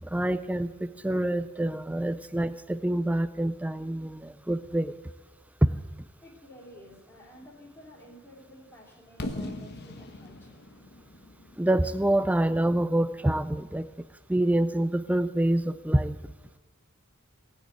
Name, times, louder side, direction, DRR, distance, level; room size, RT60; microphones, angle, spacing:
voice 1, 0.0-4.9 11.6-13.9 14.3-16.2, right 1 dB, 5° right, 13 dB, 0.4 m, -26 dB
voice 2, 6.2-10.6, equal, 10° left, -4 dB, 3.2 m, -51 dB
Fireworks, 9.2-13.1, left 1 dB, 50° left, 1.2 m, -40 dB
17.5 x 6.5 x 9.2 m, 1.2 s
head